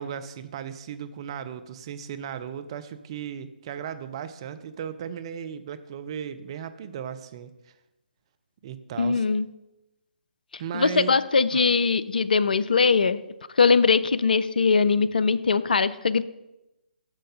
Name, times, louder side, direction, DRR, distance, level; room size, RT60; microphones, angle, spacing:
voice 1, 0.0-7.5 8.6-9.2 10.6-11.2 11.5-11.6, right 8 dB, 30° right, 11 dB, 0.5 m, -36 dB
voice 2, 9.0-9.5 10.7-13.2 13.6-16.2, left 5 dB, 60° left, 15 dB, 0.4 m, -21 dB
6.4 x 6.1 x 5.2 m, 0.94 s
figure-of-eight pair, 135°, 5 cm